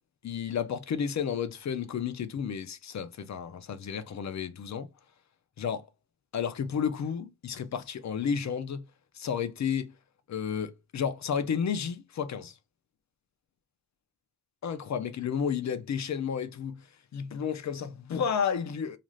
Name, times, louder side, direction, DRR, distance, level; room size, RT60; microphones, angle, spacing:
voice 1, 0.2-4.9 5.6-5.9 6.3-8.8 9.2-9.9 10.3-12.5 14.6-16.8 17.1-19.0, left 7 dB, 45° left, 0.4 m, -32 dB
2.5 x 2.4 x 3.0 m
wide cardioid pair, 170°, 39 cm